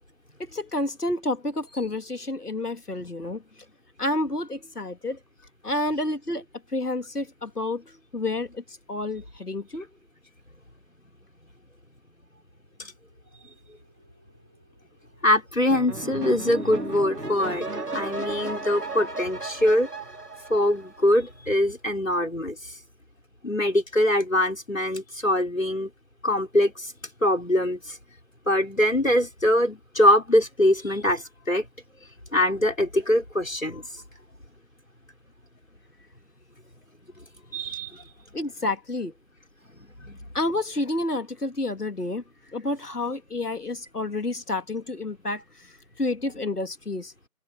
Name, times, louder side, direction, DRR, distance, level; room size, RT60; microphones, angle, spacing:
voice 1, 0.4-3.4 4.0-5.2 5.6-9.9 38.3-39.1 40.3-42.2 42.5-47.1, left 2 dB, 75° left, 2.1 m, -30 dB
sound 1, 12.3-21.3, right 1 dB, 5° right, 6.2 m, -64 dB
voice 2, 15.2-17.7 17.9-19.9 20.5-22.8 23.4-25.9 26.2-26.9 27.2-28.0 28.5-31.7 32.3-34.0 37.5-38.1 40.0-40.2, left 1 dB, 55° left, 4.9 m, -23 dB
sound 2, 15.7-21.1, right 2 dB, 80° right, 2.9 m, -34 dB
figure-of-eight pair, 180°, 47 cm